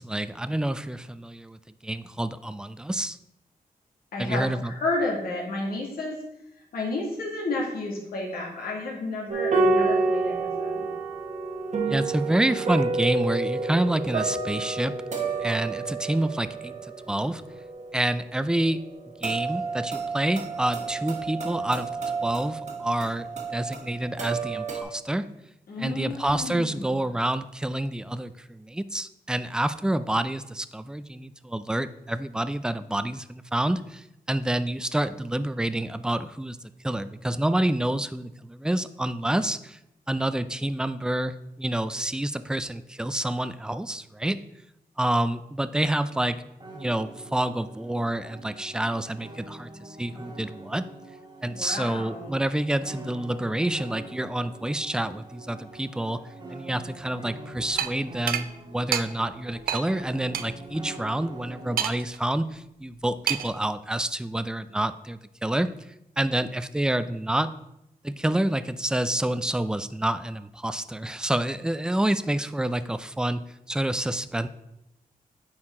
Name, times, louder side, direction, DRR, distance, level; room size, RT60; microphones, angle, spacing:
voice 1, 0.0-3.2 4.2-4.7 11.9-14.9 15.4-16.7 17.1-17.4 17.9-18.8 19.2-21.9 22.2-25.3 25.8-36.6 36.8-39.8 40.1-44.4 45.0-46.4 46.7-50.9 51.4-56.2 56.5-65.7 66.2-67.5 68.0-73.4 73.7-74.5, right 1 dB, 5° right, 13 dB, 0.3 m, -28 dB
voice 2, 4.1-6.2 6.7-10.9 25.7-27.0 51.5-52.4, left 2 dB, 90° left, -2 dB, 2.0 m, -31 dB
sound 1, 9.3-24.8, right 3 dB, 50° right, 1.1 m, -29 dB
sound 2, 46.6-62.0, right 2 dB, 30° right, 1.5 m, -44 dB
sound 3, 57.8-57.9 58.3-58.5 58.9-59.1 59.7-59.8 60.3-60.5 61.8-62.2 63.3-63.6, right 9 dB, 75° right, 0.4 m, -27 dB
8.5 x 4.5 x 3.7 m, 0.84 s
cardioid pair, 85°, 15 cm